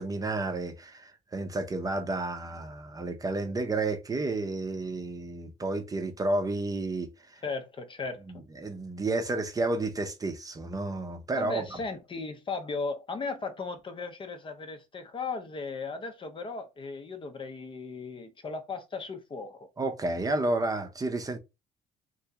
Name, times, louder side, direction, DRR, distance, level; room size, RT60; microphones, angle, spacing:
voice 1, 0.0-7.4 8.3-11.8 19.8-21.4, right 2 dB, 20° right, 0.7 m, -31 dB
voice 2, 7.4-8.2 11.3-19.7, left 4 dB, 30° left, 0.6 m, -36 dB
2.9 x 2.7 x 3.5 m
cardioid pair, 110°, 17 cm